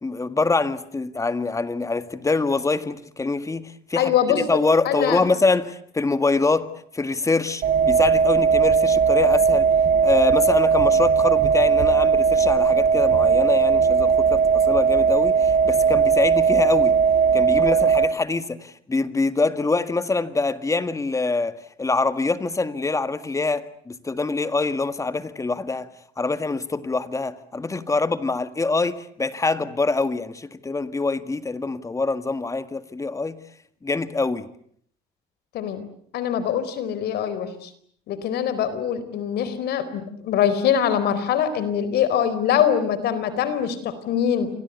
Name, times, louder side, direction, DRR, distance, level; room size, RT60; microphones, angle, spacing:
voice 1, 0.0-9.7 10.0-16.9 17.3-25.9 26.2-33.4 33.8-34.5, left 3 dB, 20° left, 1.8 m, -24 dB
voice 2, 4.0-4.4 4.8-5.2 35.5-35.8 36.1-37.7 38.1-44.5, left 9 dB, 75° left, 4.4 m, -23 dB
sound 1, 7.6-18.1, right 6 dB, 50° right, 3.9 m, -18 dB
29.0 x 24.5 x 8.2 m
cardioid pair, 110°, 17 cm